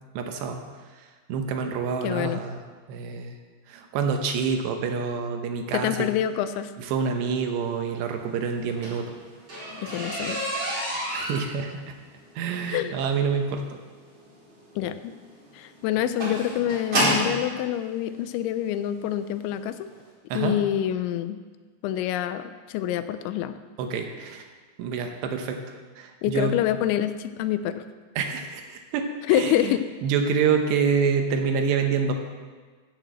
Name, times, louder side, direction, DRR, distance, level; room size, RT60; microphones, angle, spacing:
voice 1, 0.2-0.6 1.3-2.6 2.9-3.4 3.7-6.1 6.8-9.1 11.1-12.0 12.4-13.8 20.3-20.6 23.8-24.4 24.8-25.6 26.0-26.5 28.2-29.1 29.3-29.7 30.0-32.1, right 6 dB, 75° right, 4 dB, 2.9 m, -27 dB
voice 2, 2.0-2.4 5.7-6.7 9.8-10.4 10.7-10.9 12.7-13.0 14.8-15.1 15.5-19.9 20.3-21.4 21.8-23.6 26.2-27.8 29.3-29.8, left 11 dB, 85° left, 11 dB, 2.9 m, -26 dB
sound 1, 8.5-17.4 18.3-18.4 19.0-19.2 19.5-19.6 19.9-20.0, equal, 30° right, 5.7 m, -29 dB
14.5 x 6.7 x 7.6 m, 1.4 s
omnidirectional pair, 5.4 m